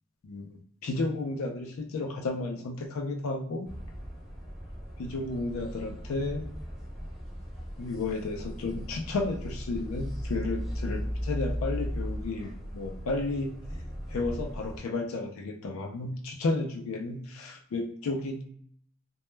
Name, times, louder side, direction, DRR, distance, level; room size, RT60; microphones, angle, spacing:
voice 1, 0.2-3.7 5.0-6.5 7.8-13.6 14.1-18.4, left 3 dB, 85° left, 3 dB, 0.4 m, -33 dB
sound 1, 3.6-14.8, equal, ahead, 0.6 m, -37 dB
2.2 x 2.0 x 3.1 m, 0.62 s
head